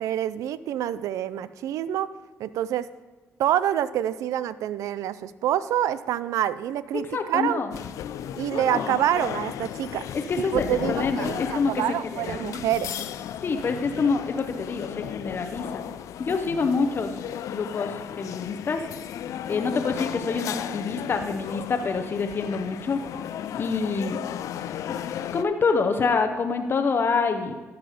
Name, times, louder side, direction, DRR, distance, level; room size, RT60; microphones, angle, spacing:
voice 1, 0.0-2.1 2.4-2.9 3.4-7.6 8.4-10.0 10.5-12.9, right 11 dB, 85° right, 16 dB, 0.4 m, -27 dB
voice 2, 6.9-7.8 8.5-8.9 10.1-11.8 12.1-12.6 13.4-15.8 16.2-17.1 17.5-18.8 19.5-23.0 23.5-24.2 24.9-25.0 25.3-27.6, left 4 dB, 45° left, 6 dB, 0.8 m, -26 dB
sound 1, 7.7-25.4, left 10 dB, 75° left, 0.4 m, -35 dB
12.5 x 6.0 x 5.0 m, 1.3 s
cardioid pair, 90°, 5 cm